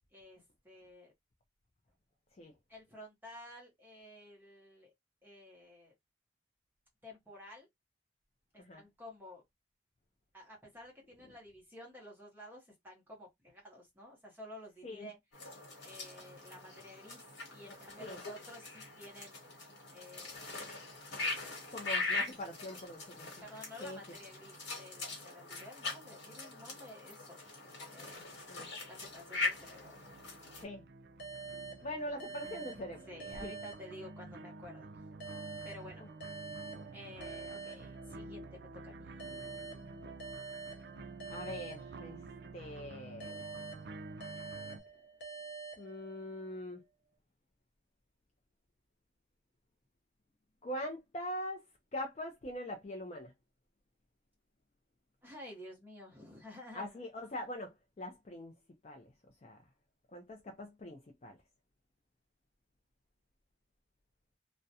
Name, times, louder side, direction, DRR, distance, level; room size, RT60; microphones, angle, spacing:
voice 1, 0.1-1.1 2.7-4.9 5.2-5.9 7.0-7.7 8.5-9.4 10.3-15.2 15.8-19.4 19.9-20.4 23.4-27.4 27.9-28.2 28.9-30.1 33.1-34.9 35.6-36.0 36.9-39.9 55.2-57.0, left 1 dB, 10° right, 0.7 m, -52 dB
sound 1, 15.3-30.6, left 3 dB, 80° left, 1.1 m, -41 dB
voice 2, 17.7-18.2 21.7-23.3 23.8-24.0 28.5-28.7 30.6-30.8 31.8-33.1 33.4-33.5 40.9-41.0 41.3-42.2 42.5-43.4 45.8-46.8 50.6-51.6 51.9-53.3 56.7-58.5 58.8-59.1 59.4-59.6 60.1-61.4, left 1 dB, 35° left, 0.4 m, -43 dB
sound 2, 28.4-44.8, right 3 dB, 65° right, 0.4 m, -50 dB
sound 3, 31.2-34.5 35.2-38.5 39.2-42.5 43.2-46.5, right 4 dB, 65° left, 0.7 m, -47 dB
2.3 x 2.1 x 2.7 m
head